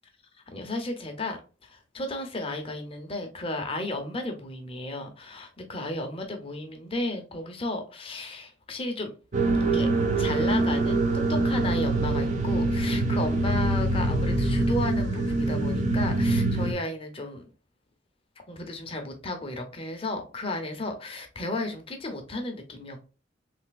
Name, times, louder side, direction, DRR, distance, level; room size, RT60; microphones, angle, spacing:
voice 1, 0.5-1.4 1.6-9.1 9.7-9.9 10.2-11.0 11.3-17.5 18.5-23.0, left 2 dB, 30° left, 0.6 m, -33 dB
sound 1, 9.3-16.7, right 2 dB, 40° right, 0.5 m, -24 dB
3.3 x 2.8 x 2.2 m
head